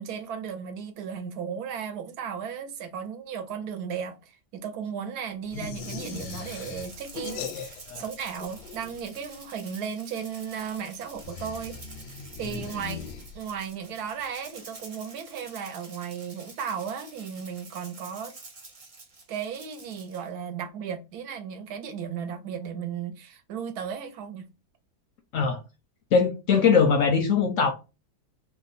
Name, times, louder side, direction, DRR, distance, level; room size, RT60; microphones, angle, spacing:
voice 1, 0.0-11.8 12.4-13.0 13.3-18.3 19.3-24.5, right 7 dB, 75° right, 1.1 m, -35 dB
sound 1, 5.5-8.1 8.3-9.2 11.2-13.7, left 6 dB, 90° left, 1.2 m, -39 dB
Rattle (instrument), 5.8-20.3, right 3 dB, 40° right, 0.5 m, -48 dB
voice 2, 26.1-27.7, left 5 dB, 70° left, 0.8 m, -21 dB
2.9 x 2.2 x 4.0 m
omnidirectional pair, 1.7 m